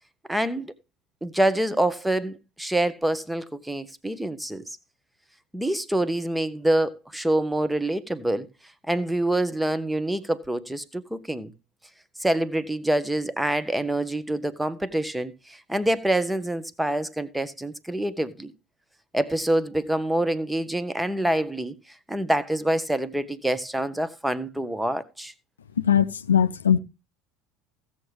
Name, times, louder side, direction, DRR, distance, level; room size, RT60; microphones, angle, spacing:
voice 1, 0.3-0.7 1.2-4.6 5.5-8.5 8.9-11.5 12.2-18.5 19.1-21.7 22.1-25.3, right 1 dB, 5° right, 0.9 m, -26 dB
voice 2, 25.8-26.8, left 8 dB, 75° left, 0.5 m, -20 dB
16.0 x 7.1 x 3.3 m
figure-of-eight pair, 70°, 0 cm